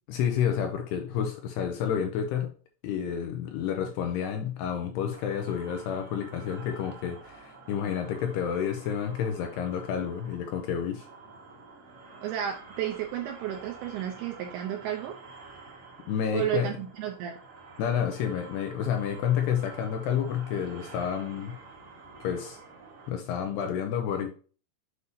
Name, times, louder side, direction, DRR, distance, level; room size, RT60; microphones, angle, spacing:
voice 1, 0.1-2.5 2.8-11.1 16.1-16.8 17.8-21.6 22.2-22.6 23.1-24.3, left 8 dB, 85° left, 2.5 m, -30 dB
sound 1, 5.1-23.1, right 4 dB, 50° right, 1.9 m, -49 dB
voice 2, 12.2-15.2 16.3-17.4, right 11 dB, 80° right, 2.3 m, -32 dB
8.1 x 5.5 x 2.7 m
omnidirectional pair, 5.3 m